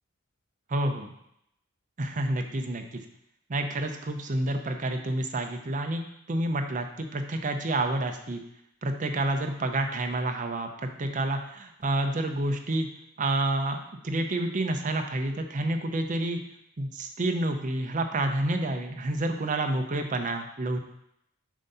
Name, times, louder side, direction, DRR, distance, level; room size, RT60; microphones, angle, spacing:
voice 1, 0.7-1.1 2.0-3.0 3.5-6.0 6.3-8.4 8.8-12.9 13.2-16.4 16.8-20.8, right 1 dB, 35° right, 5 dB, 0.6 m, -29 dB
7.3 x 2.7 x 5.4 m, 0.77 s
head